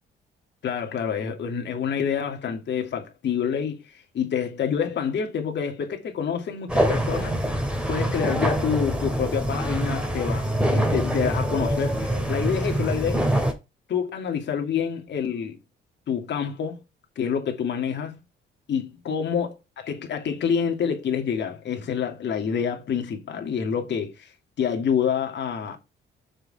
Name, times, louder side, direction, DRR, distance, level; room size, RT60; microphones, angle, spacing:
voice 1, 0.6-7.3 7.9-13.3 13.9-15.6 16.1-16.8 17.2-18.2 18.7-19.6 19.8-24.3 24.6-25.8, left 7 dB, 60° left, 2.6 m, -27 dB
sound 1, 6.7-13.5, right 1 dB, 5° right, 2.9 m, -25 dB
6.7 x 6.2 x 4.3 m
cardioid pair, 90°, 20 cm